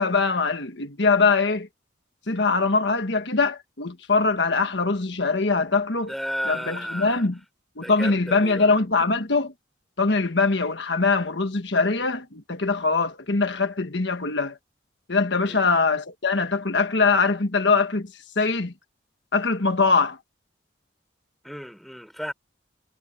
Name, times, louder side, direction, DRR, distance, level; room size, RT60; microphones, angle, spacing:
voice 1, 0.0-1.7 2.3-6.1 6.5-7.3 7.8-9.5 10.0-14.6 15.1-18.7 19.3-20.2, left 4 dB, 65° left, 1.5 m, -22 dB
voice 2, 6.0-7.3 7.8-8.8 15.4-15.6 21.4-22.3, equal, ahead, 4.5 m, -33 dB
head